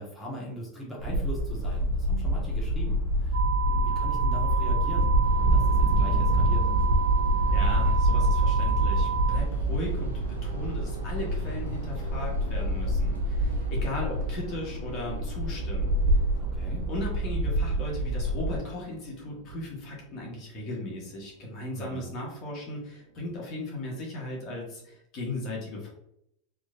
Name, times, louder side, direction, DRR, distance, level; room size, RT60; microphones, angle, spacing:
voice 1, 0.0-6.6 16.4-16.9 21.7-22.0, right 1 dB, 5° left, -6 dB, 1.5 m, -40 dB
sound 1, 1.0-18.6, right 1 dB, 90° left, 0.9 m, -26 dB
sound 2, 3.3-9.4, right 8 dB, 65° right, 0.9 m, -31 dB
sound 3, 5.2-23.5, right 7 dB, 80° right, 0.3 m, -40 dB
voice 2, 7.5-15.9 16.9-25.9, left 2 dB, 50° left, -2 dB, 1.4 m, -37 dB
3.7 x 3.1 x 2.5 m, 0.77 s
hypercardioid pair, 100°, 0 cm